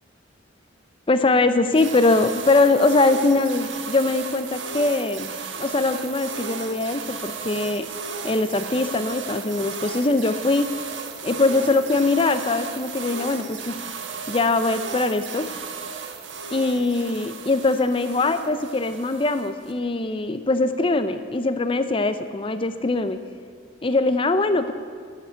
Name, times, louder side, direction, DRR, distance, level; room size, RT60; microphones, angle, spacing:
voice 1, 1.1-5.3 5.6-7.9 8.2-10.7 11.2-13.7 14.3-15.5 16.5-23.2 23.8-24.7, left 2 dB, 25° left, 10 dB, 0.5 m, -22 dB
sound 1, 1.7-19.7, right 5 dB, 75° right, 1.1 m, -35 dB
10.5 x 8.3 x 10.0 m, 2.1 s
head